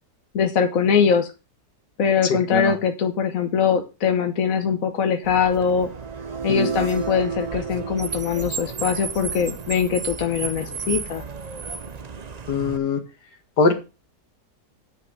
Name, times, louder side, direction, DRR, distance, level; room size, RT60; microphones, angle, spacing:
voice 1, 0.3-1.3 2.0-5.9 6.4-11.2, left 7 dB, 55° left, 6 dB, 1.4 m, -22 dB
voice 2, 2.2-2.7 6.5-6.7 12.5-13.0 13.6-13.7, left 4 dB, 75° left, 6 dB, 2.2 m, -22 dB
Car, 5.2-12.8, right 5 dB, 40° right, 0.5 m, -34 dB
sound 1, 5.7-9.8, right 5 dB, 25° right, 0.9 m, -32 dB
9.5 x 5.7 x 6.6 m, 0.30 s
omnidirectional pair, 1.8 m